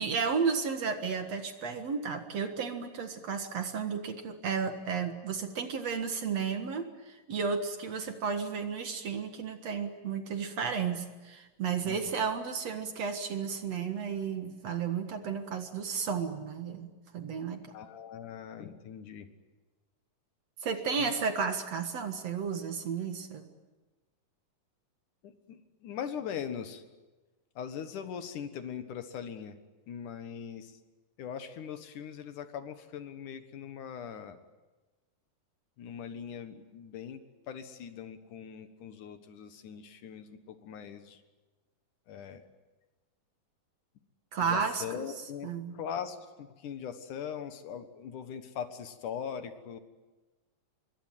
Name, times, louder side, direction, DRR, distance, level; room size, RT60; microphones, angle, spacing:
voice 1, 0.0-17.7 20.6-23.4 44.3-45.0 45.4-45.8, right 6 dB, 55° right, 7 dB, 2.5 m, -33 dB
voice 2, 11.8-12.1 17.7-19.3 21.0-21.1 25.2-26.8 27.6-29.6 29.9-30.8 31.2-34.5 35.8-37.2 37.5-41.2 42.1-42.5 44.5-49.8, left 8 dB, 70° left, 9 dB, 2.8 m, -41 dB
26.0 x 23.0 x 9.1 m, 1.2 s
omnidirectional pair, 3.9 m